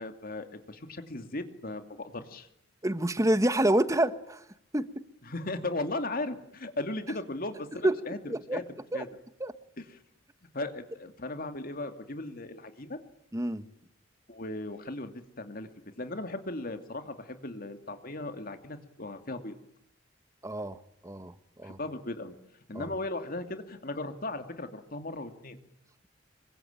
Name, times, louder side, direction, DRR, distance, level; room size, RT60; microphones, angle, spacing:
voice 1, 0.0-2.5 5.3-8.6 8.9-9.1 9.8-9.9 10.5-13.0 14.3-15.7 16.0-19.6 21.6-22.3 22.7-25.6, left 2 dB, 50° left, 7 dB, 2.6 m, -37 dB
voice 2, 2.8-4.4 4.7-5.0 7.8-8.0 8.3-8.6 8.9-9.0 9.4-9.5 13.3-13.6 20.4-21.8 22.7-22.9, right 1 dB, 15° right, 12 dB, 1.4 m, -28 dB
26.5 x 24.0 x 9.0 m, 0.79 s
head